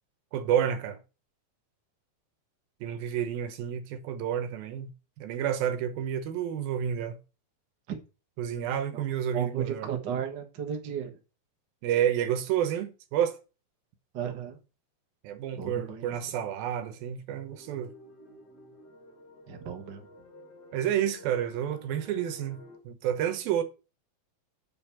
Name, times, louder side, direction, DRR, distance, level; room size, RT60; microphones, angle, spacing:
voice 1, 0.3-1.0 2.8-4.9 5.2-7.2 8.4-9.9 11.8-13.4 15.2-17.9 20.7-23.6, right 10 dB, 85° right, 2.8 m, -30 dB
voice 2, 9.3-11.2 14.1-14.6 15.5-16.2 19.5-20.1, right 8 dB, 55° right, 1.2 m, -34 dB
sound 1, 17.5-22.8, left 1 dB, 35° left, 1.8 m, -52 dB
6.8 x 5.2 x 7.1 m
omnidirectional pair, 4.2 m